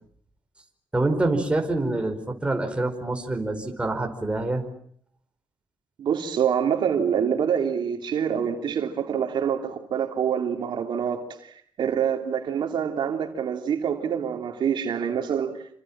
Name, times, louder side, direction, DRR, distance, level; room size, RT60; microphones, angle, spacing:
voice 1, 0.9-4.6, right 2 dB, 15° right, 4.9 m, -26 dB
voice 2, 6.0-15.5, right 8 dB, 75° right, 3.2 m, -26 dB
29.0 x 26.0 x 7.5 m
cardioid pair, 120°, 8 cm